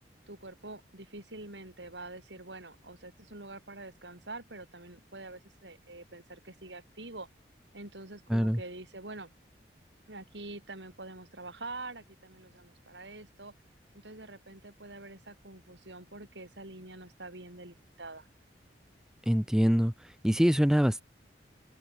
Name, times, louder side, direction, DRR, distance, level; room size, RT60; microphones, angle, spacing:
voice 1, 0.3-7.3 7.7-9.3 10.1-13.5 13.9-18.3, right 2 dB, 85° right, 8.0 m, -46 dB
voice 2, 19.3-19.9 20.2-21.0, equal, 5° right, 0.4 m, -24 dB
open air
head